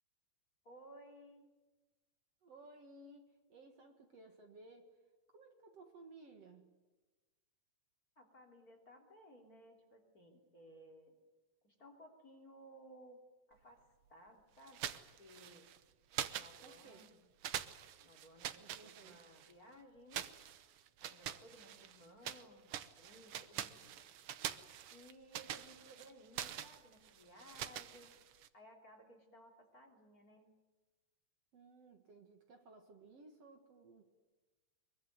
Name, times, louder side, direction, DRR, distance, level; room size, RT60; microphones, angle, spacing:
voice 1, 0.6-1.5 8.1-11.1 11.6-15.7 16.3-17.2 18.0-20.3 21.0-24.0 24.9-28.2 28.5-30.5, equal, 25° left, 1 dB, 3.4 m, -59 dB
voice 2, 2.4-4.9 5.3-6.7 16.6-17.1 18.5-19.2 31.5-34.1, right 2 dB, 55° right, 5 dB, 2.5 m, -58 dB
sound 1, 14.7-15.8 16.1-17.1 17.4-19.5 20.1-22.4 22.7-28.5, right 10 dB, 90° right, 1.2 m, -45 dB
24.0 x 22.5 x 9.4 m, 1.2 s
omnidirectional pair, 3.9 m